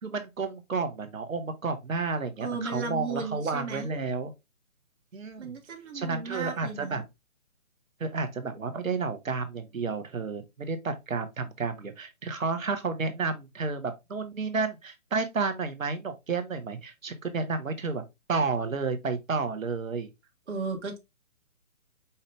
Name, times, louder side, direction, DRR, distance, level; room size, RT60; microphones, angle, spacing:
voice 1, 0.0-4.3 5.1-5.5 5.9-7.0 8.0-18.0 18.3-20.1, right 4 dB, 70° right, 1.3 m, -31 dB
voice 2, 2.4-3.9 5.4-7.0 20.5-21.0, right 4 dB, 55° right, 1.5 m, -35 dB
5.6 x 2.7 x 3.2 m
figure-of-eight pair, 140°, 42 cm